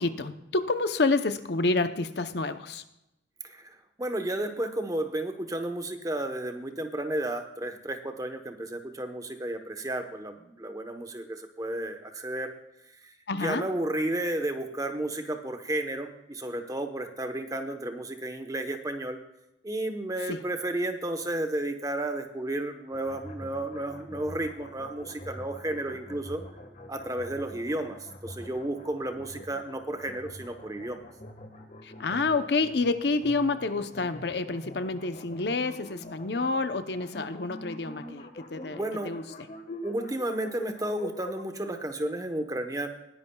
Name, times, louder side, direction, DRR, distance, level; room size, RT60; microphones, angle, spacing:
voice 1, 0.0-2.8 13.3-13.7 20.3-20.4 31.8-39.2, left 3 dB, 60° left, 10 dB, 0.7 m, -28 dB
voice 2, 3.4-12.5 13.0-19.2 19.6-26.4 26.9-31.0 38.7-39.1 39.8-42.9, right 1 dB, 20° right, 6 dB, 1.0 m, -32 dB
sound 1, 22.9-41.4, left 1 dB, 40° left, 1.5 m, -45 dB
20.0 x 11.0 x 2.3 m, 0.87 s
head